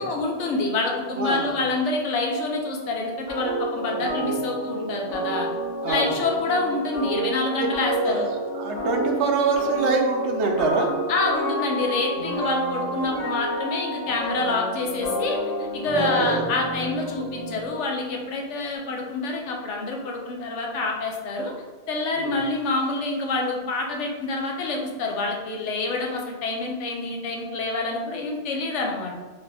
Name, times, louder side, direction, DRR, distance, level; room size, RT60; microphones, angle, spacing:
voice 1, 0.0-5.5 5.9-8.3 11.1-21.5 21.9-29.2, left 3 dB, 85° left, 1 dB, 1.0 m, -27 dB
voice 2, 1.2-1.5 4.2-4.3 5.8-6.1 7.6-7.7 7.9-10.9 15.9-16.4 22.1-22.4, right 4 dB, 75° right, 2 dB, 0.9 m, -25 dB
sound 1, 3.3-17.9, right 1 dB, 40° left, 1.2 m, -29 dB
4.1 x 2.7 x 3.3 m, 1.3 s
omnidirectional pair, 1.2 m